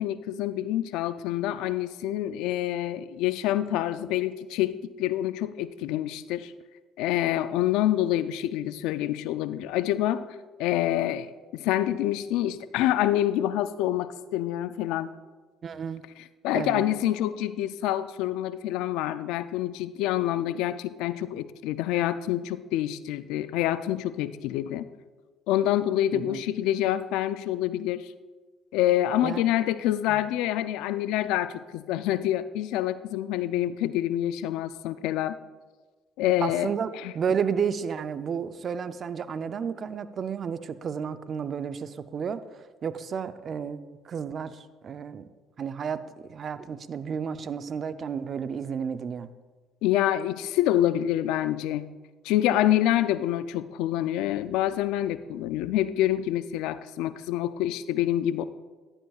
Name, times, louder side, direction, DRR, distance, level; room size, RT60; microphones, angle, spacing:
voice 1, 0.0-6.5 7.0-10.2 10.6-15.1 16.4-24.8 25.5-28.1 28.7-35.4 36.2-36.7 37.0-37.1 49.8-51.9 52.2-58.5, left 13 dB, 80° left, 14 dB, 0.4 m, -27 dB
voice 2, 15.6-16.1 16.5-16.8 26.1-26.4 29.2-29.4 30.1-30.2 36.4-36.9 37.1-45.3 45.6-49.3, right 7 dB, 45° right, 12 dB, 0.5 m, -32 dB
12.5 x 10.5 x 2.4 m, 1.3 s
supercardioid pair, 80°, 0 cm